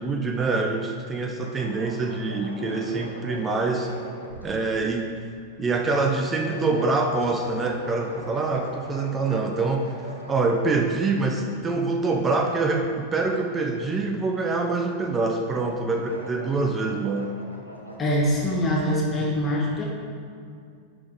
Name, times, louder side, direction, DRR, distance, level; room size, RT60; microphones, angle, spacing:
voice 1, 0.0-3.9 4.4-5.1 5.6-9.9 10.3-17.3, right 3 dB, 20° right, 3 dB, 0.6 m, -25 dB
sound 1, 1.4-5.2 5.8-6.0 6.3-10.8 11.3-11.7 13.6-13.8 15.0-15.3 15.6-18.7, equal, 90° right, 0.9 m, -40 dB
voice 2, 18.0-19.8, equal, 20° left, -3 dB, 1.4 m, -23 dB
10.5 x 4.2 x 3.7 m, 2.2 s
figure-of-eight pair, 90°, 0 cm